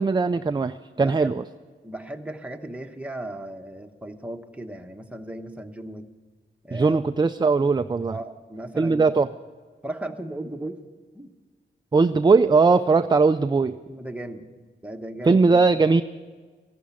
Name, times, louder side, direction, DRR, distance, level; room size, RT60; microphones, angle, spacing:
voice 1, 0.0-1.4 6.7-8.1 8.8-9.3 11.9-13.7 15.3-16.0, right 4 dB, 20° right, 10 dB, 0.3 m, -19 dB
voice 2, 1.0-1.3 1.8-6.1 6.6-7.0 8.1-9.1 9.8-10.8 11.1-11.3 13.9-14.5 14.8-15.7, right 1 dB, 5° right, 4 dB, 1.0 m, -36 dB
15.0 x 11.5 x 7.1 m, 1.4 s
wide cardioid pair, 105°, 21 cm